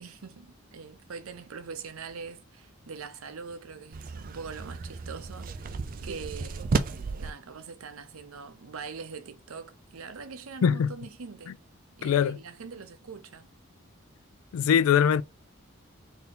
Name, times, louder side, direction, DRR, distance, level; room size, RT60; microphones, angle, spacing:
voice 1, 0.0-6.8 7.2-11.5 12.0-13.5, right 5 dB, 80° right, 0.6 m, -43 dB
sound 1, 3.9-7.3, right 4 dB, 40° right, 0.4 m, -33 dB
voice 2, 10.6-10.9 11.5-11.6 12.0-12.4 14.5-15.2, left 8 dB, 80° left, 0.3 m, -22 dB
3.9 x 2.8 x 3.7 m
head